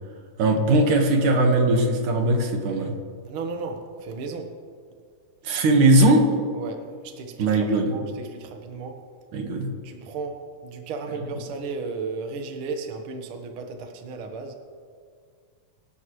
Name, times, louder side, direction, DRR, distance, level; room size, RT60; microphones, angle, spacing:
voice 1, 0.4-3.0 5.4-6.3 7.4-7.9 9.3-9.7, right 2 dB, 85° right, 3 dB, 3.1 m, -19 dB
voice 2, 3.3-4.6 6.5-9.1 9.8-14.6, right 4 dB, 55° right, 4 dB, 1.8 m, -34 dB
25.5 x 12.0 x 3.2 m, 2.1 s
omnidirectional pair, 3.4 m